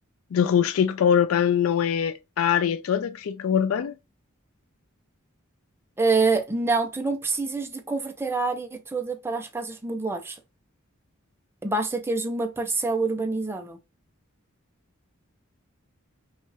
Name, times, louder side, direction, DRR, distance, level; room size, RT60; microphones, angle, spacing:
voice 1, 0.3-3.9, left 8 dB, 75° left, 0.4 m, -23 dB
voice 2, 6.0-10.4 11.6-13.8, right 3 dB, 10° right, 0.6 m, -26 dB
5.3 x 2.4 x 3.2 m
head